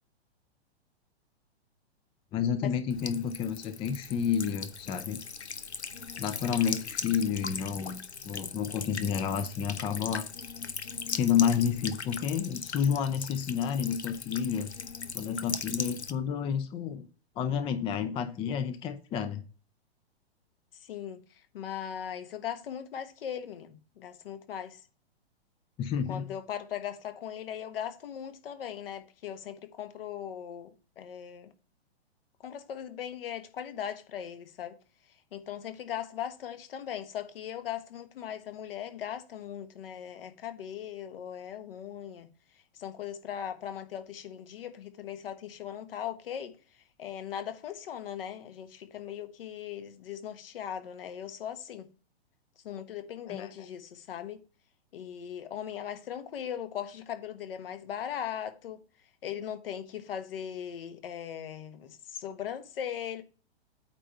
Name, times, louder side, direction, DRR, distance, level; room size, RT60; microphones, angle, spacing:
voice 1, 2.3-5.2 6.2-10.3 11.1-14.7 15.1-17.1 17.4-19.4 25.8-26.3 53.3-53.5, left 8 dB, 15° left, 0.5 m, -30 dB
Buzz / Water tap faucet / Trickle dribble, 2.9-16.1, left 5 dB, 90° left, 0.8 m, -39 dB
voice 2, 20.8-24.9 26.1-31.5 32.4-34.8 35.1-42.3 42.5-51.9 52.6-54.5 54.9-58.8 59.2-63.2, left 9 dB, 60° left, 1.2 m, -39 dB
8.8 x 3.4 x 5.5 m
figure-of-eight pair, 115°, 32 cm